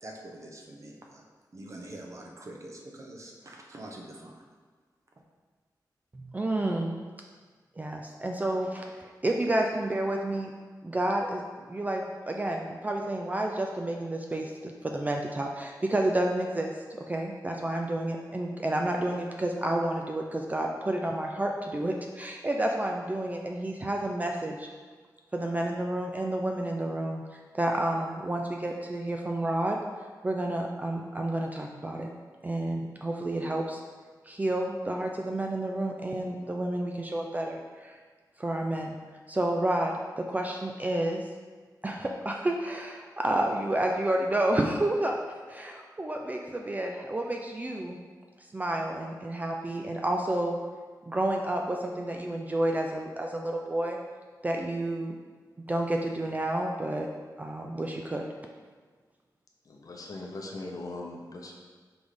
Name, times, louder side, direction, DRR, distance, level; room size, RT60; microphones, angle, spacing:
voice 1, 0.0-1.2 1.5-4.4, right 1 dB, 45° right, 0 dB, 0.9 m, -45 dB
voice 2, 6.1-6.9 7.8-8.9 9.2-10.5 10.8-24.7 25.3-29.8 30.2-32.1 32.4-33.8 34.2-38.0 38.4-39.0 39.3-41.2 41.8-45.2 45.5-48.0 48.5-50.5 51.1-54.0 54.4-55.2 55.7-57.1 57.4-58.3, right 1 dB, 20° right, 1 dB, 0.4 m, -30 dB
voice 3, 59.6-61.5, left 2 dB, 55° left, 0 dB, 0.9 m, -40 dB
6.1 x 3.5 x 4.9 m, 1.5 s
wide cardioid pair, 130°, 7 cm